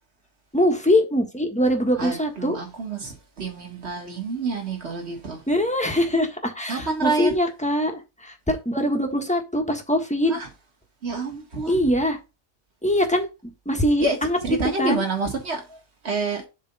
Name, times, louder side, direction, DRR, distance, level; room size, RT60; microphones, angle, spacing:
voice 1, 0.5-2.6 5.5-10.4 11.7-12.2 12.8-13.3 13.6-14.4 14.8-15.0, equal, 5° left, 1.3 m, -22 dB
voice 2, 2.0-5.4 6.7-7.4 10.3-10.5 11.0-11.9 14.0-15.6 16.0-16.5, right 3 dB, 45° right, 2.1 m, -28 dB
7.4 x 3.4 x 5.4 m
omnidirectional pair, 1.5 m